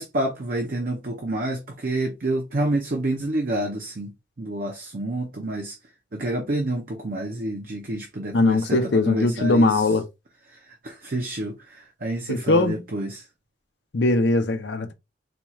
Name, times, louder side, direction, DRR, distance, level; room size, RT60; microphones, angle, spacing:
voice 1, 0.0-4.1 4.4-5.8 6.1-8.8 9.1-9.8 10.5-13.2, right 1 dB, 50° right, 0.6 m, -28 dB
voice 2, 8.3-10.0 12.3-12.8 13.9-14.9, left 2 dB, 70° left, 0.6 m, -20 dB
4.2 x 2.3 x 3.0 m
head